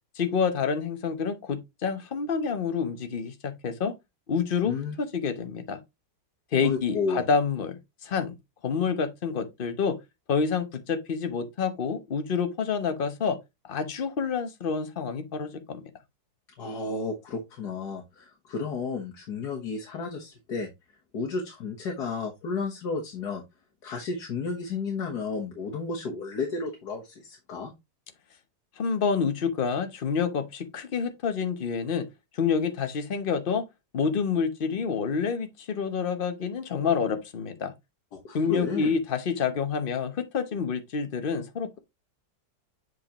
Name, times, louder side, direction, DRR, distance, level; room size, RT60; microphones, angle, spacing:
voice 1, 0.2-3.9 4.3-5.8 6.5-8.4 8.6-10.0 10.3-13.4 13.6-15.8 28.8-32.1 32.3-33.6 33.9-37.7 38.3-41.8, left 6 dB, 40° left, 0.8 m, -28 dB
voice 2, 4.7-5.0 6.6-7.2 16.6-20.7 21.1-23.4 23.8-27.7 38.1-39.0, left 4 dB, 60° left, 1.7 m, -32 dB
7.6 x 4.7 x 2.9 m
omnidirectional pair, 2.0 m